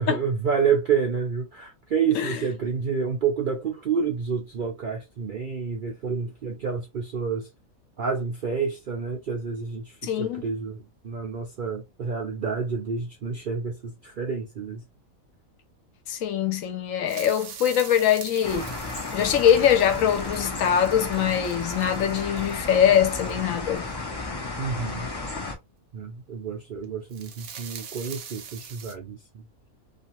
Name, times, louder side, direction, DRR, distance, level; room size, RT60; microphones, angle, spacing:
voice 1, 0.0-7.5 8.0-14.8 24.6-25.1 25.9-29.4, right 6 dB, 65° right, 0.5 m, -29 dB
voice 2, 10.0-10.5 16.1-18.7 19.1-23.9, left 9 dB, 75° left, 1.0 m, -23 dB
sound 1, 17.0-23.8 26.8-28.9, right 7 dB, 80° right, 1.0 m, -43 dB
sound 2, 18.4-25.6, left 3 dB, 40° left, 0.3 m, -33 dB
2.5 x 2.5 x 2.9 m
omnidirectional pair, 1.5 m